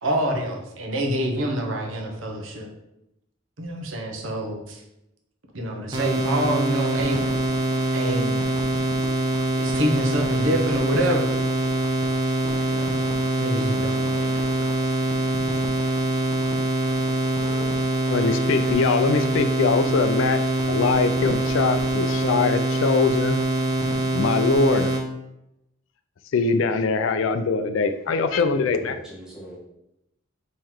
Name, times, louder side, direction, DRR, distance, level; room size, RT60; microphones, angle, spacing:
voice 1, 0.0-2.7 3.6-4.8 5.5-7.2 7.9-8.3 9.5-11.4 12.7-13.0 13.4-14.8, right 1 dB, 85° right, 1 dB, 0.9 m, -27 dB
sound 1, 5.9-25.0, right 2 dB, 20° right, 0.7 m, -24 dB
voice 2, 17.2-17.8 18.1-23.4 24.1-24.9 26.3-29.0, left 4 dB, 80° left, 9 dB, 0.4 m, -23 dB
voice 3, 28.1-29.6, equal, 5° right, -6 dB, 1.3 m, -40 dB
3.8 x 3.1 x 4.4 m, 0.86 s
head